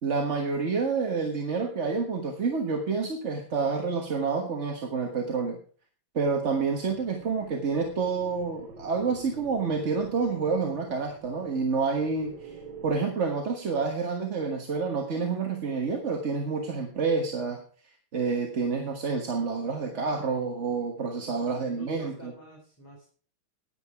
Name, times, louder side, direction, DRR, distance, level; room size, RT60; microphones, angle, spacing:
voice 1, 0.0-5.6 6.1-12.6 12.8-17.6 18.1-22.3, right 4 dB, 40° right, 2 dB, 1.5 m, -28 dB
sound 1, 6.4-13.0, right 3 dB, 90° right, 4.0 m, -48 dB
voice 2, 21.4-23.1, equal, 5° left, -3 dB, 4.1 m, -47 dB
10.5 x 10.0 x 4.7 m, 0.43 s
omnidirectional pair, 2.2 m